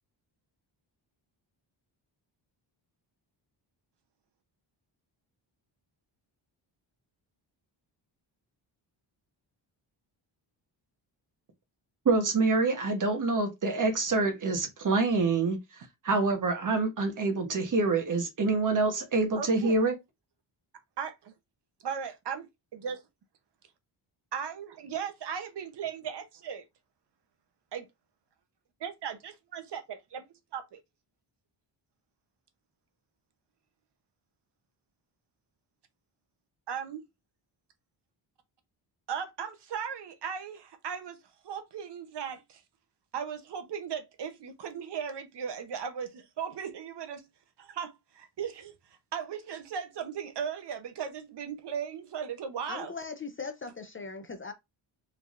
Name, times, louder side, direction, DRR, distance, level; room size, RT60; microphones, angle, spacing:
voice 1, 12.0-15.6 16.0-20.0, right 3 dB, 40° right, 1.2 m, -26 dB
voice 2, 19.4-19.7 21.0-21.3 21.8-22.5 22.7-23.0 24.3-26.6 27.7-27.9 28.8-30.2 30.5-30.8 36.7-37.0 39.1-41.2 41.4-42.6 43.1-47.2 47.6-48.7 49.1-52.9, right 7 dB, 60° right, 0.9 m, -37 dB
voice 3, 52.7-54.5, left 4 dB, 30° left, 0.5 m, -39 dB
4.7 x 3.4 x 2.5 m
wide cardioid pair, 150°, 45 cm